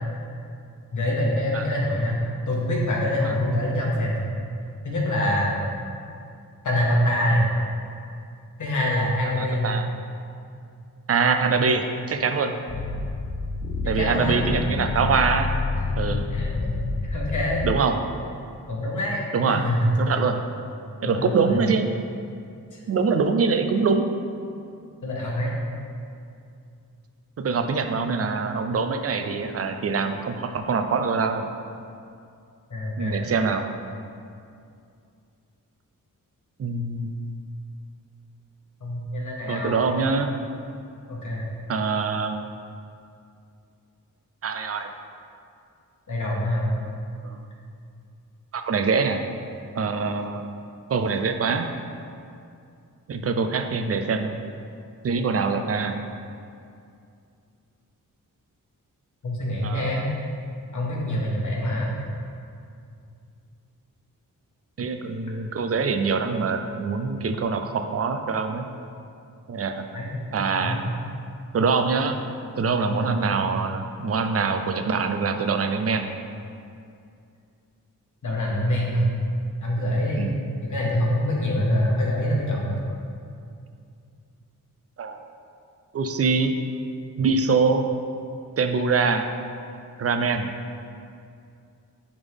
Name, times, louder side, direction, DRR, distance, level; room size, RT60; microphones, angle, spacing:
voice 1, 0.9-4.3 4.8-5.6 6.6-7.5 8.6-9.7 13.8-14.4 16.1-17.7 18.7-19.9 21.0-21.6 22.7-22.8 25.0-25.5 32.7-33.2 38.8-40.0 41.1-41.4 46.1-46.7 59.2-60.1 60.7-61.9 69.9-70.2 70.5-70.9 72.9-73.2 78.2-79.1 79.6-80.3 80.6-82.8, left 1 dB, 60° left, -3 dB, 1.5 m, -25 dB
voice 2, 9.4-9.9 11.1-12.5 13.9-15.5 16.0-16.2 17.6-18.0 19.3-19.7 20.0-20.4 21.0-21.8 22.9-24.1 27.4-31.4 33.0-33.7 36.6-37.1 39.5-40.3 41.7-42.3 44.4-44.9 47.2-47.4 48.5-49.2 49.8-50.5 50.9-51.7 53.1-54.4 55.0-56.0 59.6-60.1 64.8-68.6 69.5-69.8 70.3-70.8 71.5-72.2 72.5-76.1 80.2-80.4 85.0-85.2 85.9-86.5 87.2-87.9 88.6-89.3 90.0-90.5, right 4 dB, 45° right, 7 dB, 0.5 m, -24 dB
sound 1, 12.7-17.7, left 3 dB, 30° left, 0.4 m, -28 dB
9.6 x 3.7 x 3.5 m, 2.4 s
wide cardioid pair, 90°, 34 cm